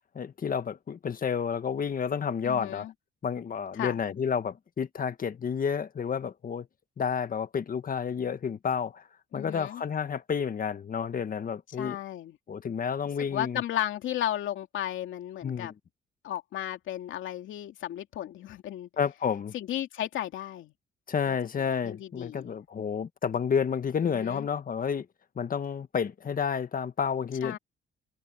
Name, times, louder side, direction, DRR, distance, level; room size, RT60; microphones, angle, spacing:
voice 1, 0.1-2.9 3.2-6.7 7.0-9.0 9.3-12.0 12.5-13.6 15.4-15.7 19.0-19.5 21.1-25.1 25.3-27.6, left 7 dB, 45° left, 1.5 m, -30 dB
voice 2, 2.4-2.9 3.7-4.0 9.3-9.8 11.8-12.3 13.3-15.7 16.2-18.9 19.5-20.7 21.3-21.4 21.8-22.6 24.0-24.5 27.4-27.6, left 12 dB, 80° left, 2.6 m, -34 dB
cardioid pair, 90°, 20 cm